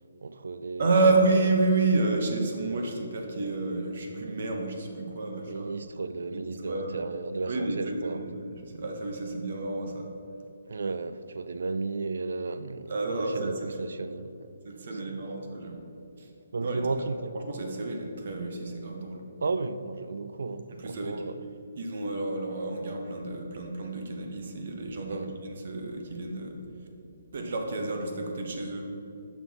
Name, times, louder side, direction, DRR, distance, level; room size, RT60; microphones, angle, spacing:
voice 1, 0.2-1.1 2.6-2.9 5.2-8.3 10.7-14.5 14.7-15.2 16.5-17.3 19.4-21.4 25.1-25.3, right 3 dB, 75° right, 0.3 m, -34 dB
voice 2, 0.8-5.7 6.3-7.1 7.5-10.1 12.9-13.5 14.6-15.9 16.2-16.3 16.6-16.8 17.3-19.2 20.8-21.2 21.8-26.6 27.3-28.9, right 3 dB, 50° right, 0.8 m, -29 dB
6.0 x 5.8 x 3.5 m
hypercardioid pair, 170°, 0 cm